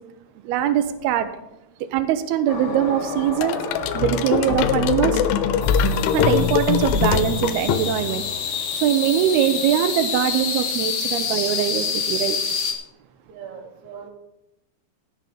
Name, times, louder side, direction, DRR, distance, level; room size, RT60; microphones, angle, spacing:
voice 1, 0.5-1.3 1.9-3.6 3.9-5.2 6.1-8.2 8.8-12.4, right 11 dB, 90° right, 10 dB, 2.2 m, -22 dB
sound 1, 2.5-12.7, left 5 dB, 55° left, 2.7 m, -28 dB
sound 2, 3.4-8.2, left 8 dB, 85° left, 3.1 m, -22 dB
voice 2, 13.3-14.1, right 7 dB, 70° right, -1 dB, 2.7 m, -39 dB
17.0 x 6.8 x 5.0 m, 0.89 s
omnidirectional pair, 5.3 m